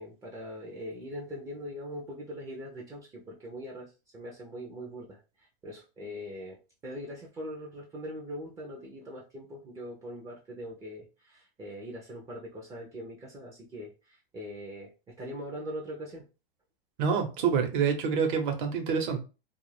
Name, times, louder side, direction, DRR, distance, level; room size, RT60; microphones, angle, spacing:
voice 1, 0.0-6.6 6.8-14.9 15.2-16.3, equal, 10° right, -3 dB, 0.3 m, -41 dB
voice 2, 17.0-19.2, right 6 dB, 55° right, 5 dB, 0.9 m, -27 dB
2.4 x 2.1 x 3.1 m, 0.31 s
hypercardioid pair, 125°, 30 cm